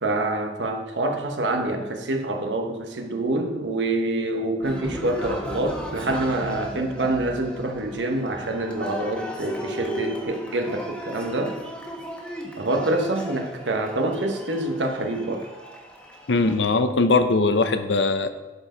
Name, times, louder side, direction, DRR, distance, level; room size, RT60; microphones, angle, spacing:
voice 1, 0.0-11.6 12.6-15.4, right 2 dB, 80° right, 4 dB, 1.1 m, -26 dB
Cheering, 4.6-16.6, equal, 5° left, 1.1 m, -36 dB
voice 2, 16.3-18.3, left 3 dB, 85° left, 10 dB, 0.7 m, -20 dB
11.5 x 4.6 x 5.0 m, 1.1 s
head